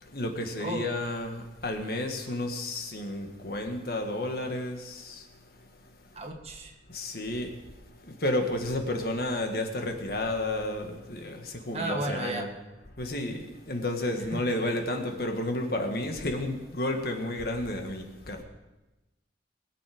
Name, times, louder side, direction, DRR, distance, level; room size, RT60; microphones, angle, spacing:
voice 1, 0.0-5.3 6.9-7.6 8.0-12.6 13.0-18.4, left 1 dB, 55° left, 1.6 m, -31 dB
voice 2, 0.6-0.9 6.1-6.7 11.7-12.5 14.3-14.4, right 2 dB, 35° right, 1.4 m, -33 dB
21.5 x 7.7 x 5.1 m
head